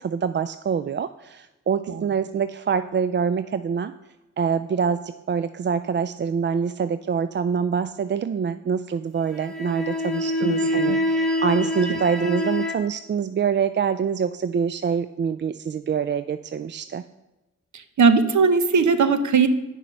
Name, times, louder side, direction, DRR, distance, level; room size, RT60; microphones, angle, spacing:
voice 1, 0.0-3.9 4.4-17.0, right 6 dB, 35° right, 12 dB, 0.4 m, -25 dB
sound 1, 9.2-12.8, left 1 dB, ahead, 1.9 m, -25 dB
voice 2, 10.6-11.0 11.9-12.0 17.7-19.5, right 5 dB, 65° right, 11 dB, 0.9 m, -19 dB
8.7 x 6.0 x 5.4 m, 1.0 s
supercardioid pair, 45°, 32 cm